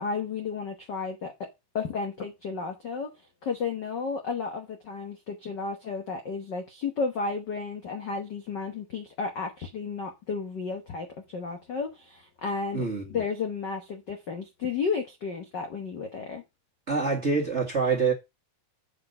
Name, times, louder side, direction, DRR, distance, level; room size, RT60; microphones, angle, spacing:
voice 1, 0.0-1.5 1.7-3.1 3.4-12.8 13.1-16.4, left 5 dB, 65° left, 1.0 m, -33 dB
voice 2, 12.7-13.2 16.9-18.1, right 4 dB, 30° right, 1.5 m, -26 dB
7.4 x 5.9 x 5.3 m
omnidirectional pair, 3.7 m